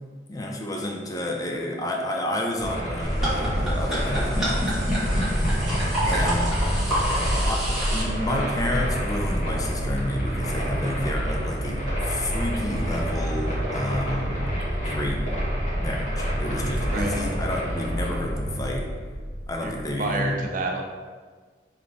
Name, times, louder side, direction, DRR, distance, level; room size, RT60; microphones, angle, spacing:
voice 1, 0.3-6.5 7.5-14.5 14.7-15.2 15.8-18.9 19.5-20.4, left 1 dB, 20° left, 1 dB, 0.4 m, -30 dB
sound 1, 2.6-19.9, equal, 40° left, 1.4 m, -28 dB
sound 2, 3.0-8.0, equal, ahead, 1.5 m, -26 dB
voice 2, 16.9-17.2 19.6-20.8, right 2 dB, 50° right, 2 dB, 0.5 m, -30 dB
4.1 x 3.2 x 3.4 m, 1.5 s
head